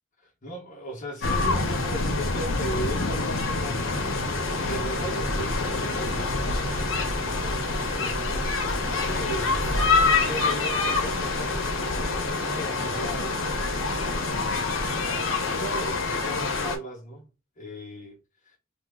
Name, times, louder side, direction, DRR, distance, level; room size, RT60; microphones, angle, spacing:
voice 1, 0.2-7.0 7.3-11.9 12.3-17.3 17.6-18.2 18.4-18.6, right 1 dB, 40° left, 0.9 m, -38 dB
sound 1, 1.2-16.8, left 3 dB, 75° left, 0.8 m, -26 dB
sound 2, 3.9-14.3, right 1 dB, 15° right, 1.1 m, -39 dB
2.9 x 2.2 x 3.5 m
head